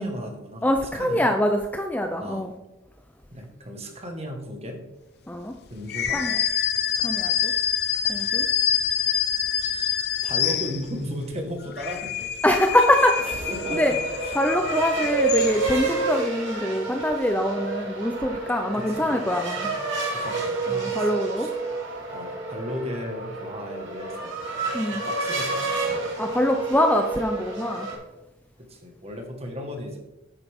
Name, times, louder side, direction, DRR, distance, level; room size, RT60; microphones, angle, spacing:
voice 1, 0.0-0.6 0.9-1.2 2.2-2.4 3.3-4.8 5.7-6.3 9.1-9.3 10.2-12.3 12.7-13.1 13.5-14.4 18.7-19.1 20.1-21.1 21.4-21.5 22.1-24.4 24.9-25.9 28.7-30.0, equal, 30° right, 3 dB, 1.6 m, -35 dB
voice 2, 0.6-2.5 5.3-5.6 6.1-6.4 7.0-7.5 8.1-8.5 12.4-13.1 13.7-13.9 14.3-19.7 20.7-21.5 24.7-25.0 26.2-27.9, left 1 dB, 10° left, 4 dB, 0.5 m, -24 dB
sound 1, 5.9-11.1 11.6-15.9, left 9 dB, 50° left, 0.7 m, -26 dB
sound 2, 13.1-27.9, right 4 dB, 60° right, 2.9 m, -29 dB
10.0 x 8.2 x 3.6 m, 0.94 s
head